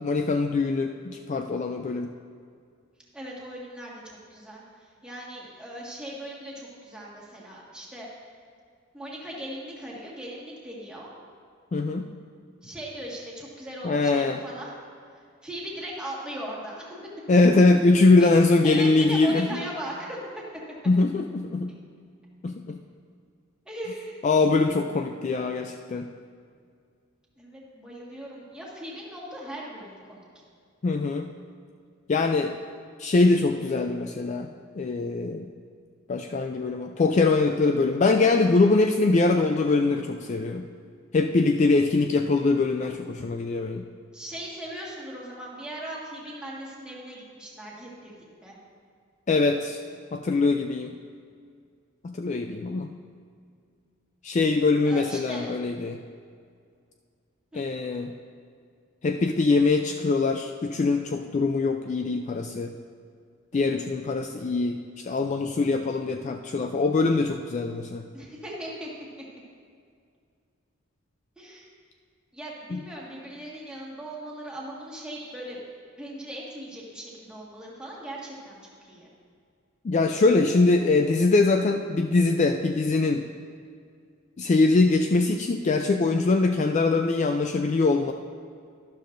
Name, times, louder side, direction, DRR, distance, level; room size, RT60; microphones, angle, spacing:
voice 1, 0.0-2.1 11.7-12.1 13.8-14.4 17.3-19.6 20.9-21.7 22.4-22.8 24.2-26.1 30.8-31.3 32.1-32.5 33.0-34.5 34.8-35.5 36.1-40.7 41.1-43.8 49.3-49.8 50.1-50.9 52.0-52.9 54.2-56.0 57.5-58.1 59.0-62.7 63.5-68.1 72.7-72.8 79.8-83.2 84.4-88.1, left 3 dB, 35° left, 5 dB, 0.3 m, -23 dB
voice 2, 3.1-4.6 5.0-8.1 8.9-11.1 12.6-14.7 15.4-17.0 18.2-20.2 23.7-24.2 27.4-30.3 44.1-48.6 54.8-55.5 57.5-57.7 63.5-63.9 65.9-66.1 68.1-68.9 71.4-71.7 72.3-75.6 76.0-78.6 78.9-79.1, right 1 dB, 5° right, -5 dB, 1.7 m, -39 dB
12.0 x 11.5 x 2.6 m, 2.2 s
head